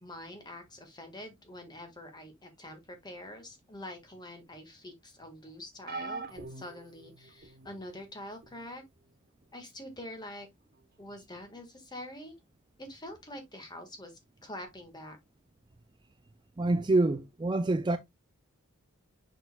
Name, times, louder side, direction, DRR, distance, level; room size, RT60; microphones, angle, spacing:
voice 1, 0.0-8.8 9.5-10.5 11.0-12.3 12.8-15.2, left 1 dB, 20° left, 1.6 m, -45 dB
sound 1, 5.9-7.7 8.4-8.7 10.0-10.1, right 3 dB, 45° right, 0.9 m, -42 dB
voice 2, 16.6-18.0, right 2 dB, 20° right, 0.3 m, -26 dB
6.8 x 6.2 x 2.2 m
head